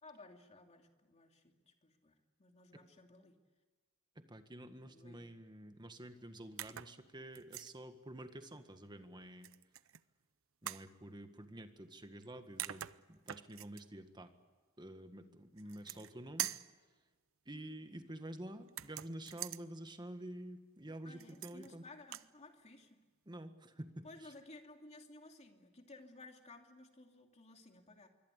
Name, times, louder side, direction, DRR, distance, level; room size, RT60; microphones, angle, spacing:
voice 1, 0.0-3.4 4.8-5.2 15.1-15.3 15.6-16.2 21.0-23.0 24.0-28.1, left 2 dB, 30° left, 4 dB, 2.7 m, -57 dB
voice 2, 4.1-9.5 10.6-14.3 14.8-16.5 17.4-21.8 23.2-24.3, right 1 dB, 20° right, 8 dB, 1.7 m, -49 dB
sound 1, 6.6-7.0 7.3-7.7 9.4-10.0 10.7-10.9 12.2-12.3 12.6-13.8 15.6-16.1 16.4-16.7 18.7-19.6 21.2-21.7 22.0-22.3, right 13 dB, 70° right, 0.7 m, -44 dB
26.0 x 23.5 x 8.3 m, 1.4 s
head